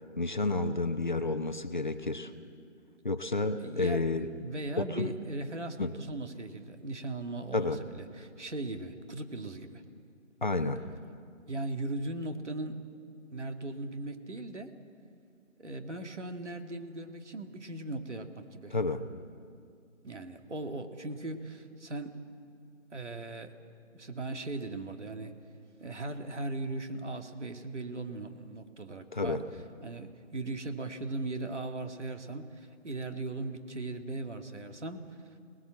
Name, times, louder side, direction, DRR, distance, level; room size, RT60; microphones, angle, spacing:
voice 1, 0.2-2.3 3.0-4.3 4.8-5.1 5.8-5.9 7.5-7.8 10.4-10.8 18.7-19.1 29.1-29.4, left 2 dB, 35° left, 8 dB, 0.9 m, -30 dB
voice 2, 3.6-9.8 11.5-12.8 13.3-14.8 15.6-18.7 20.0-22.2 22.9-23.5 23.9-25.3 25.8-29.4 29.8-35.2, right 2 dB, 65° right, 5 dB, 2.3 m, -38 dB
27.5 x 19.5 x 7.7 m, 2.3 s
figure-of-eight pair, 165°, 38 cm